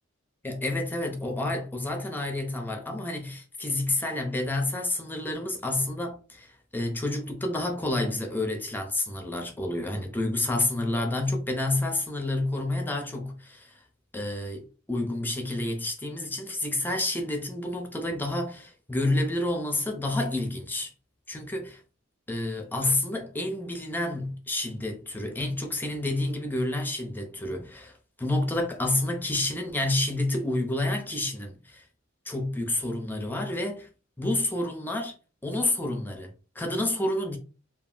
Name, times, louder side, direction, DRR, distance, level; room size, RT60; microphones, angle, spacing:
voice 1, 0.4-13.8 14.1-20.9 21.3-21.8 22.3-31.8 32.3-33.9 34.2-35.1 35.4-37.4, left 2 dB, 10° left, 0.5 m, -29 dB
2.4 x 2.0 x 3.7 m
head